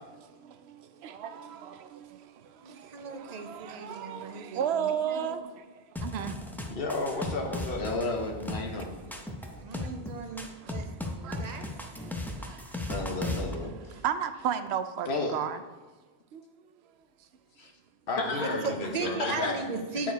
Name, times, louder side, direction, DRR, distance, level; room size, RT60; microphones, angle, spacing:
voice 1, 0.7-2.2 2.7-5.5 6.0-6.4 8.7-8.9 10.6-10.7 11.2-11.7 12.4-13.0 14.0-15.6 16.3-16.4, right 8 dB, 90° right, 11 dB, 0.8 m, -34 dB
voice 2, 2.6-5.4 9.6-11.7 18.4-20.1, right 4 dB, 45° right, 5 dB, 0.8 m, -37 dB
sound 1, 6.0-13.5, left 1 dB, ahead, 0.5 m, -36 dB
voice 3, 6.7-7.9 18.1-19.6, left 2 dB, 65° left, 2 dB, 1.1 m, -32 dB
voice 4, 7.7-8.9 12.9-13.8 15.1-15.3 17.6-17.7 18.2-18.5 19.2-19.5 20.0-20.1, left 3 dB, 85° left, 2 dB, 1.4 m, -32 dB
8.6 x 4.6 x 4.6 m, 1.3 s
omnidirectional pair, 1.0 m